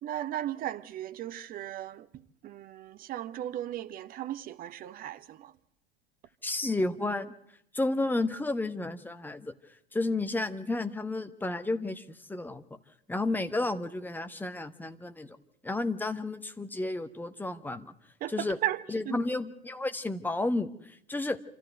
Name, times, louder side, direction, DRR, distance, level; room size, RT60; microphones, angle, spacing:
voice 1, 0.0-2.1 2.4-5.5 18.2-18.3 18.6-18.8 19.1-19.2, right 12 dB, 30° right, 0.9 m, -36 dB
voice 2, 6.4-7.3 7.7-9.5 9.9-12.6 13.1-15.4 15.6-17.9 18.3-18.6 18.9-21.4, left 2 dB, 5° left, 1.1 m, -32 dB
27.0 x 13.5 x 9.2 m
figure-of-eight pair, 85°, 30 cm